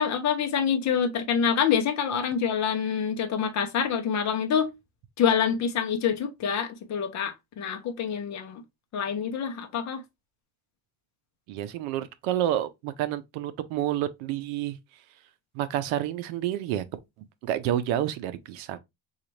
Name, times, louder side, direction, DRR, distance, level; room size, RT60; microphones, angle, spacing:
voice 1, 0.0-4.7 5.2-8.6 8.9-10.0, left 7 dB, 35° left, 0.6 m, -26 dB
voice 2, 11.5-14.8 15.5-16.8 17.4-18.8, right 12 dB, 70° right, 0.7 m, -29 dB
3.9 x 2.4 x 3.0 m
cardioid pair, 150°, 49 cm